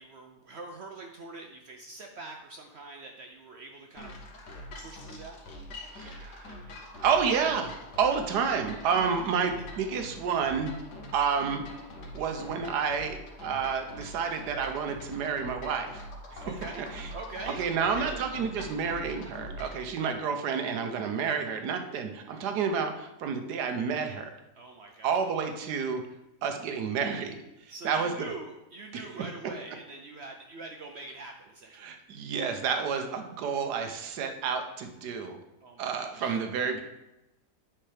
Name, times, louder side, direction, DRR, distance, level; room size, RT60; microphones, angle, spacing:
voice 1, 0.0-4.1 4.8-5.4 16.4-16.8 17.1-18.2 20.0-20.2 24.6-25.4 27.7-31.9 35.6-36.8, right 3 dB, 60° right, 3 dB, 0.7 m, -44 dB
sound 1, 3.9-19.8, left 1 dB, 85° left, 1.6 m, -44 dB
voice 2, 5.9-6.5 7.0-10.7 11.1-11.6 12.1-16.1 16.3-16.4 16.8-17.1 17.5-24.3 25.0-26.0 26.4-27.4 27.8-28.1 28.9-29.2 31.8-35.4 35.8-36.8, right 6 dB, 85° right, 6 dB, 1.4 m, -30 dB
8.7 x 5.6 x 3.4 m, 0.94 s
omnidirectional pair, 1.7 m